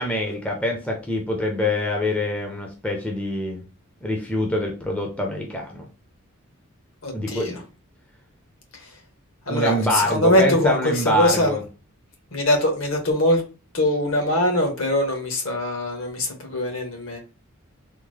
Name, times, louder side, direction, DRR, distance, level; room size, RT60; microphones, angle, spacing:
voice 1, 0.0-3.6 4.0-5.9 7.1-7.6 9.5-11.6, left 1 dB, 5° left, 0.5 m, -25 dB
voice 2, 7.0-7.6 8.7-8.9 9.5-11.6 12.3-13.4 13.7-17.2, left 1 dB, 60° left, 1.1 m, -22 dB
3.5 x 2.0 x 3.1 m
head